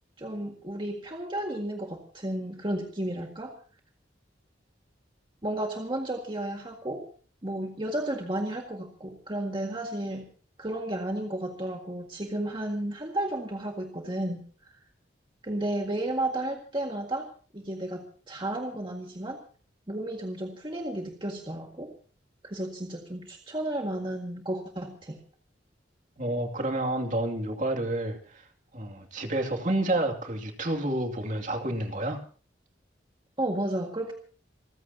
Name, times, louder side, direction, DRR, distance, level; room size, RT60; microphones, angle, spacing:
voice 1, 0.2-3.5 5.4-7.1 7.4-10.3 10.6-14.8 15.4-19.4 19.9-21.9 22.4-25.2 33.4-34.1, right 1 dB, 25° right, 2 dB, 1.9 m, -33 dB
voice 2, 26.2-28.4 28.7-32.2, right 1 dB, 40° right, 3 dB, 2.6 m, -29 dB
28.0 x 15.0 x 2.8 m, 0.40 s
head